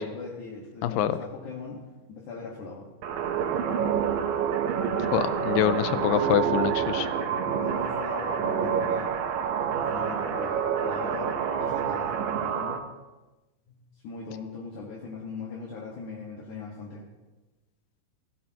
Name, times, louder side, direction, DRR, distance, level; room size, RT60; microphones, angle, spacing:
voice 1, 0.0-1.8 2.1-2.9 7.5-9.1 9.8-12.8 13.7-13.8 14.0-17.0, left 4 dB, 65° left, -3 dB, 2.9 m, -40 dB
voice 2, 0.8-1.2 5.1-7.1, left 11 dB, 90° left, 13 dB, 2.4 m, -25 dB
sound 1, 3.0-12.8, right 7 dB, 85° right, 2.7 m, -27 dB
17.0 x 16.0 x 3.0 m, 1.1 s
omnidirectional pair, 3.9 m